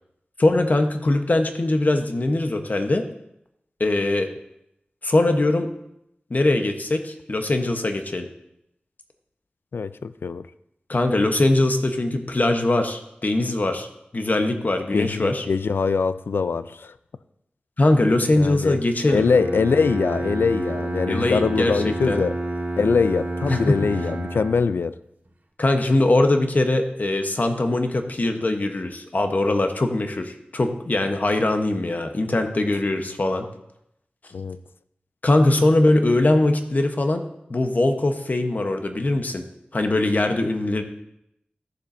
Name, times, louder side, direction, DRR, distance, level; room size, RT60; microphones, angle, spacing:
voice 1, 0.4-3.0 3.8-4.3 5.0-5.7 6.3-8.3 10.9-13.9 14.1-15.5 17.8-19.3 21.1-22.2 23.5-23.8 25.6-33.4 35.2-39.4 39.7-40.8, left 2 dB, 50° left, 5 dB, 1.0 m, -21 dB
voice 2, 9.7-10.5 14.9-16.9 18.4-18.8 19.1-22.4 22.8-25.0 34.3-34.6, left 5 dB, 85° left, 14 dB, 0.3 m, -23 dB
Bowed string instrument, 19.1-24.9, right 2 dB, 55° right, 1.6 m, -29 dB
14.5 x 7.1 x 2.7 m, 0.79 s
wide cardioid pair, 55°, 4 cm